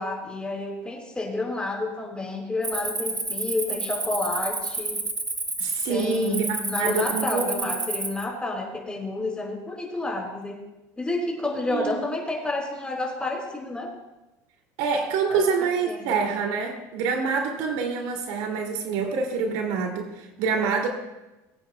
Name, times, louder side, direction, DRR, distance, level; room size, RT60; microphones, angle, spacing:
voice 1, 0.0-5.0 5.9-10.6 11.0-13.9 15.3-15.4 15.8-16.1, left 2 dB, 10° left, -1 dB, 4.3 m, -30 dB
Cricket, 2.6-8.2, right 2 dB, 15° right, 1.3 m, -30 dB
voice 2, 5.6-6.5 6.8-7.7 11.6-12.0 14.8-20.9, right 5 dB, 75° right, 1 dB, 2.5 m, -26 dB
23.0 x 9.0 x 2.2 m, 1.0 s
supercardioid pair, 120°, 10 cm